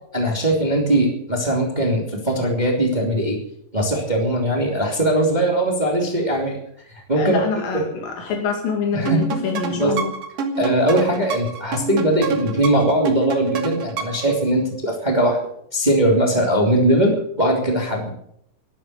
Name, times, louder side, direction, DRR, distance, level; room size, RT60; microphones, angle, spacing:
voice 1, 0.1-3.4 3.7-6.6 6.9-7.5 7.7-7.9 8.9-9.3 9.6-9.9 10.6-15.4 15.7-18.1, right 1 dB, 15° right, 0 dB, 2.7 m, -20 dB
voice 2, 7.2-10.1, left 5 dB, 85° left, 1 dB, 4.1 m, -25 dB
sound 1, 9.1-14.3, right 4 dB, 50° right, 2.4 m, -28 dB
12.5 x 11.0 x 8.7 m, 0.71 s
omnidirectional pair, 3.9 m